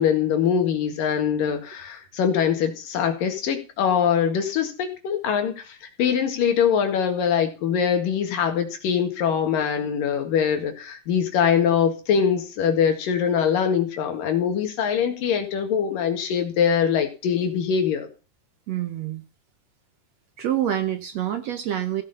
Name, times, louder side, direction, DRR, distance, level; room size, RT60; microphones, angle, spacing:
voice 1, 0.0-18.1, left 7 dB, 80° left, 3.6 m, -23 dB
voice 2, 18.7-19.2 20.4-22.0, right 11 dB, 70° right, 1.7 m, -26 dB
15.5 x 6.3 x 5.5 m
omnidirectional pair, 3.9 m